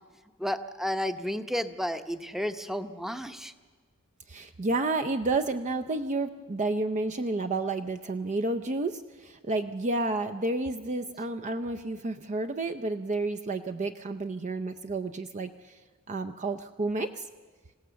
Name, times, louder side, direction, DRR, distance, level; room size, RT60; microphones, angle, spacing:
voice 1, 0.4-3.5, equal, ahead, 9 dB, 0.8 m, -32 dB
voice 2, 4.3-15.8 16.1-17.3, right 2 dB, 35° right, 6 dB, 0.6 m, -30 dB
27.0 x 16.5 x 6.9 m, 1.5 s
head